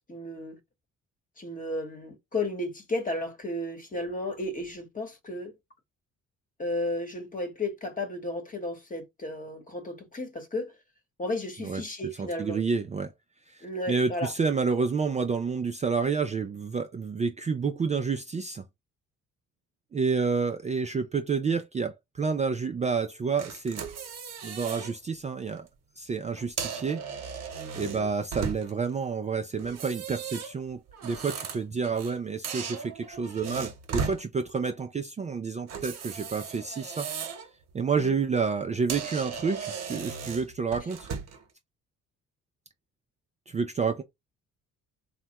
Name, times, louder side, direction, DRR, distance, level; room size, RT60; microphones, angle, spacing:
voice 1, 0.1-0.6 1.4-5.5 6.6-10.7 11.2-12.6 13.6-14.3 27.8-28.1 38.0-38.2, left 2 dB, 25° left, 1.1 m, -33 dB
voice 2, 12.2-13.1 13.5-18.6 19.9-23.8 24.4-25.7 26.0-27.0 27.7-37.1 37.7-41.1 43.5-44.0, right 5 dB, 25° right, 0.4 m, -29 dB
sound 1, 23.4-24.9 25.4-25.6 26.4-28.9 29.6-32.2 32.4-34.2 35.7-37.5 37.9-38.1 38.6-38.7 38.9-41.4, right 6 dB, 60° right, 1.0 m, -37 dB
3.2 x 2.1 x 2.9 m
cardioid pair, 90°, 30 cm